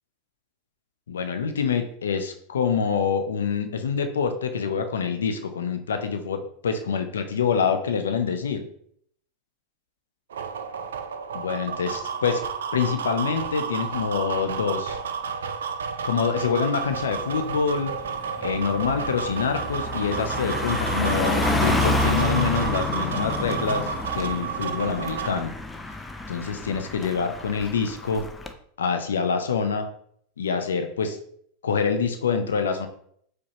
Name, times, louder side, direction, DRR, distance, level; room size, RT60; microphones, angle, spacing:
voice 1, 1.1-8.6 11.3-12.4 12.7-15.0 16.0-17.9 18.4-25.6 26.3-28.3 28.8-29.9 30.4-31.2 31.6-32.9, left 6 dB, 75° left, 8 dB, 0.4 m, -26 dB
sound 1, 10.3-25.4, right 6 dB, 70° right, 0.3 m, -31 dB
Car passing by, 16.9-17.2 17.6-28.5, left 2 dB, 10° left, 0.4 m, -29 dB
4.7 x 2.1 x 2.8 m, 0.65 s
figure-of-eight pair, 85°, 0 cm